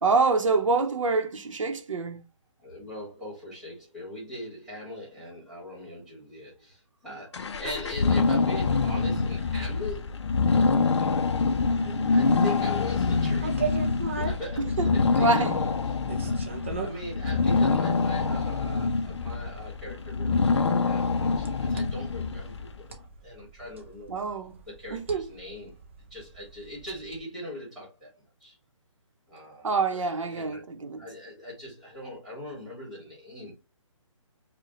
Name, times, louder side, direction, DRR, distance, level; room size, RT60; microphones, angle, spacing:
voice 1, 0.0-2.2 14.6-14.9 15.2-15.6 24.1-24.6 24.9-25.3 29.6-31.0, right 4 dB, 75° right, 0.8 m, -26 dB
voice 2, 2.6-10.2 10.8-11.4 11.7-13.8 14.1-16.4 16.7-24.2 24.7-25.7 26.1-28.1 28.4-28.6 29.3-30.6 31.0-33.5, left 1 dB, ahead, 1.4 m, -41 dB
sound 1, 7.3-22.8, left 4 dB, 55° left, 0.5 m, -25 dB
sound 2, 13.0-27.2, right 5 dB, 25° right, 0.4 m, -40 dB
4.9 x 2.2 x 3.0 m
hypercardioid pair, 170°, 17 cm